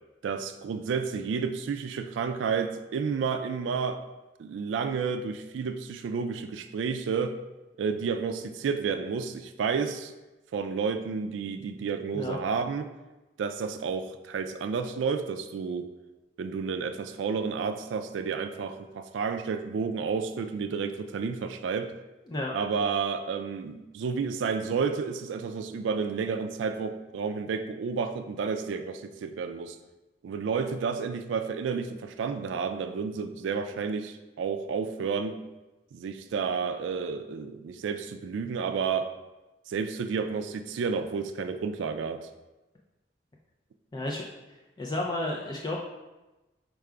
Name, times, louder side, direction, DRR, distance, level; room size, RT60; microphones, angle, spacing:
voice 1, 0.2-4.0 4.4-7.4 7.8-10.1 10.5-12.9 13.4-15.9 16.4-21.9 22.5-29.8 30.2-35.4 35.9-39.1 39.7-42.3, right 5 dB, 90° right, 9 dB, 0.3 m, -31 dB
voice 2, 43.9-44.2 44.8-45.8, left 2 dB, 20° left, -2 dB, 0.4 m, -31 dB
4.7 x 2.3 x 4.8 m, 1.1 s
head